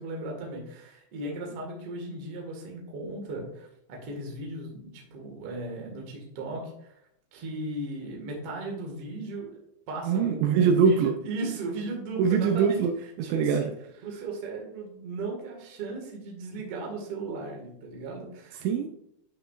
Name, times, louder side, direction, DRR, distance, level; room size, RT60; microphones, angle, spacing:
voice 1, 0.0-6.9 7.3-9.6 9.9-12.8 13.2-13.7 14.0-18.6, right 2 dB, 55° right, -1 dB, 1.7 m, -37 dB
voice 2, 10.0-11.1 12.2-13.7 18.6-18.9, right 6 dB, 80° right, 5 dB, 2.7 m, -23 dB
11.0 x 6.1 x 2.4 m, 0.76 s
omnidirectional pair, 5.4 m